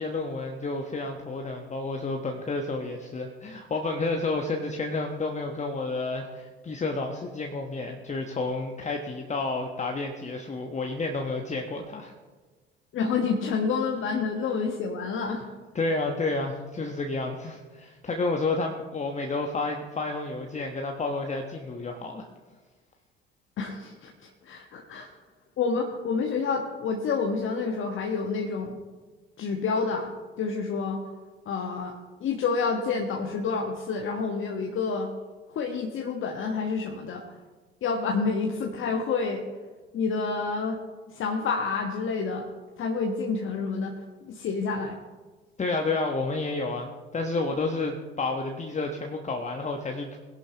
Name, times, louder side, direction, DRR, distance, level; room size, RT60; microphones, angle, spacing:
voice 1, 0.0-12.1 15.7-22.3 24.9-25.1 45.6-50.2, left 3 dB, 25° left, 2 dB, 1.2 m, -30 dB
voice 2, 12.9-15.4 23.6-25.1 25.6-28.8 29.4-31.0 31.4-35.1 35.5-37.4 37.8-39.4 39.9-40.8 41.1-42.5 42.8-43.9 44.2-45.0, left 4 dB, 45° left, 1 dB, 1.4 m, -29 dB
21.0 x 11.0 x 3.0 m, 1.3 s
figure-of-eight pair, 60°, 29 cm